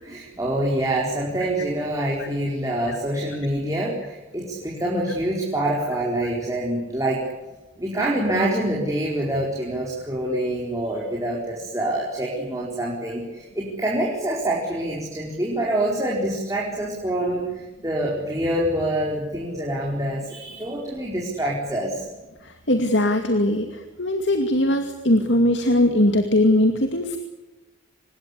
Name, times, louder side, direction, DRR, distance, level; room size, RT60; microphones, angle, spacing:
voice 1, 0.0-7.2 7.8-22.1, right 1 dB, 15° right, -3 dB, 4.5 m, -26 dB
voice 2, 22.7-23.7 24.0-27.2, left 1 dB, 65° left, 6 dB, 2.4 m, -20 dB
25.5 x 21.0 x 8.4 m, 1.1 s
head